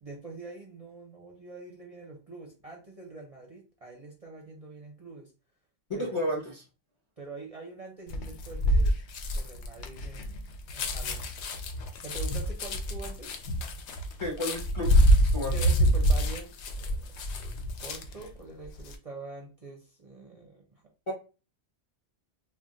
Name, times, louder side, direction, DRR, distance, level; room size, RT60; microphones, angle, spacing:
voice 1, 0.0-5.3 5.9-6.3 7.2-9.0 9.4-10.5 10.7-11.3 12.0-13.3 15.5-17.1 17.4-20.8, right 3 dB, 40° right, -1 dB, 0.6 m, -45 dB
voice 2, 6.0-6.6 14.2-14.9 15.2-15.5 21.1-21.2, equal, 35° left, -3 dB, 0.6 m, -32 dB
sound 1, 8.1-18.3 18.6-19.0, equal, 70° left, 0.8 m, -26 dB
2.3 x 2.2 x 3.7 m, 0.34 s
omnidirectional pair, 1.2 m